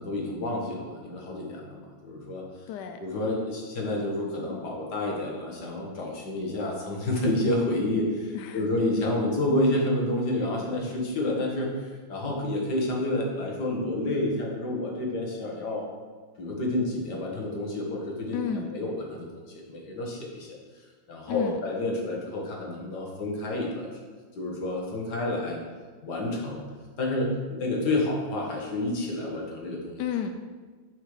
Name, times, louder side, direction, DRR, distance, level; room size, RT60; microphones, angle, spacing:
voice 1, 0.0-2.4 3.0-11.7 12.1-15.9 16.4-18.4 18.7-20.6 21.1-23.9 24.4-25.6 26.0-26.6 27.0-30.0, left 1 dB, 55° left, -1 dB, 2.1 m, -29 dB
voice 2, 2.7-3.0 8.3-8.7 18.3-18.7 21.3-21.6 30.0-30.3, left 8 dB, 75° left, 6 dB, 1.0 m, -31 dB
8.3 x 5.6 x 4.9 m, 1.4 s
omnidirectional pair, 2.3 m